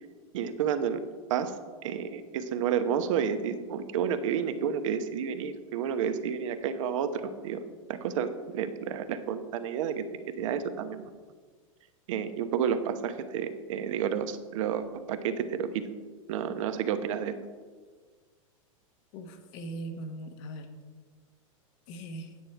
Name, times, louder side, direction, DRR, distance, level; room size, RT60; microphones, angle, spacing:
voice 1, 0.3-1.0 1.3-1.5 1.8-7.6 7.9-10.0 10.4-11.1 12.1-15.9 16.3-17.4, right 8 dB, 65° right, 9 dB, 1.0 m, -30 dB
voice 2, 19.1-20.7 21.9-22.3, right 1 dB, 55° left, 6 dB, 1.5 m, -40 dB
9.7 x 8.6 x 4.6 m, 1.5 s
hypercardioid pair, 110°, 18 cm